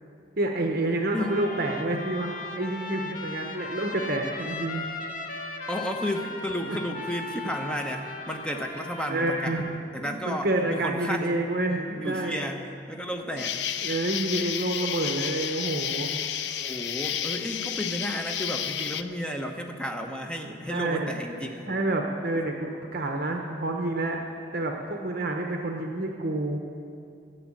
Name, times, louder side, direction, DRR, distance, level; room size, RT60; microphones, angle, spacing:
voice 1, 0.4-4.8 6.7-6.8 9.1-9.7 10.0-12.4 13.2-13.4 13.8-16.2 20.7-24.2 24.5-26.6, right 2 dB, 50° right, 2 dB, 0.9 m, -29 dB
Trumpet, 1.1-9.8, left 3 dB, 45° left, 0.9 m, -38 dB
voice 2, 5.7-9.6 9.9-11.5 11.9-13.6 13.9-14.0 16.6-21.7 22.3-22.4, equal, 5° left, 3 dB, 0.7 m, -33 dB
Insect, 13.4-19.0, left 10 dB, 65° left, 0.4 m, -31 dB
12.5 x 7.1 x 8.8 m, 2.5 s
head